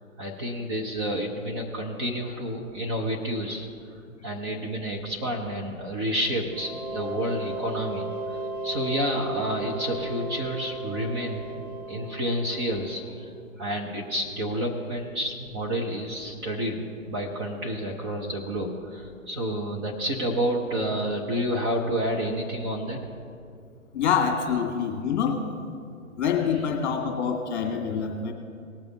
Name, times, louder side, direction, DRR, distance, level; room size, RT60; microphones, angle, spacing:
voice 1, 0.2-3.7 4.2-8.1 8.6-11.6 11.9-13.3 13.6-23.0, equal, 20° right, -1 dB, 0.8 m, -29 dB
sound 1, 6.5-13.1, right 2 dB, 50° right, 1.3 m, -35 dB
voice 2, 23.9-25.4 26.2-28.3, left 7 dB, 30° left, 2 dB, 1.9 m, -26 dB
19.0 x 6.8 x 4.1 m, 2.4 s
figure-of-eight pair, 130°, 41 cm